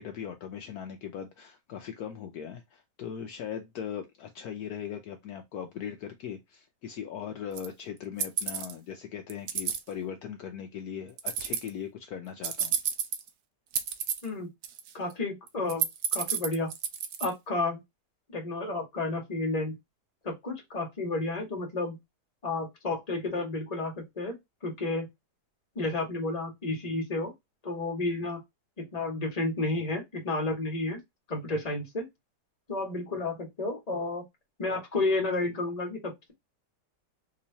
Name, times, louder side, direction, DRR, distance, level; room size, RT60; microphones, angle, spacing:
voice 1, 0.0-12.8, left 8 dB, 70° left, 1.1 m, -39 dB
sound 1, 7.6-7.7 8.2-8.7 9.3-9.8 11.2-11.7 12.4-13.3 13.7-14.3 14.6-15.1 15.5-17.3, right 8 dB, 75° right, 1.1 m, -30 dB
voice 2, 14.9-15.9 16.1-16.7 17.2-17.8 18.3-19.8 20.2-22.0 22.4-24.4 24.6-25.1 25.7-27.3 27.6-28.4 28.8-31.0 31.3-32.0 32.7-34.2 34.6-36.3, left 2 dB, 25° left, 1.3 m, -31 dB
3.8 x 3.0 x 2.7 m
omnidirectional pair, 1.8 m